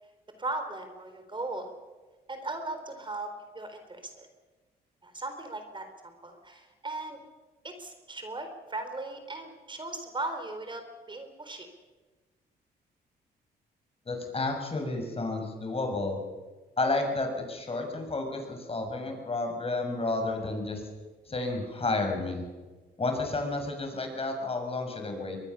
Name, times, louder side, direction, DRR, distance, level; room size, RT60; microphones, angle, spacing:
voice 1, 0.4-1.7 2.3-4.3 5.0-7.2 7.6-10.8 11.1-11.7, right 2 dB, 25° right, 7 dB, 4.0 m, -38 dB
voice 2, 14.0-16.2 16.8-20.8 21.3-22.4 23.0-25.4, left 2 dB, 35° left, 4 dB, 6.5 m, -31 dB
23.5 x 20.5 x 7.0 m, 1.3 s
supercardioid pair, 65°, 18 cm